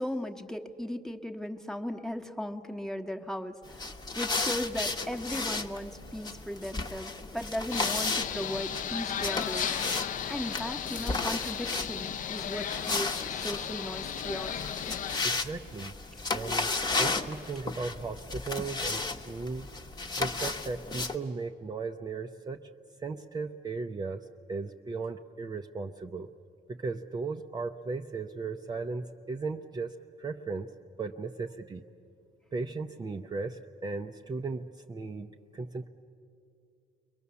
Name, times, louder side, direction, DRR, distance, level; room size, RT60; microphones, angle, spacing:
voice 1, 0.0-10.0 10.3-14.5, equal, 5° left, 4 dB, 1.1 m, -37 dB
sound 1, 3.7-21.2, left 3 dB, 25° left, 1.1 m, -34 dB
sound 2, 7.7-15.3, left 9 dB, 50° left, 0.6 m, -35 dB
voice 2, 15.2-15.9 16.3-19.7 20.2-22.6 23.0-26.3 26.7-30.7 31.0-31.8 32.5-35.9, right 4 dB, 25° right, 3 dB, 0.6 m, -36 dB
30.0 x 22.5 x 7.0 m, 2.6 s
cardioid pair, 110°, 17 cm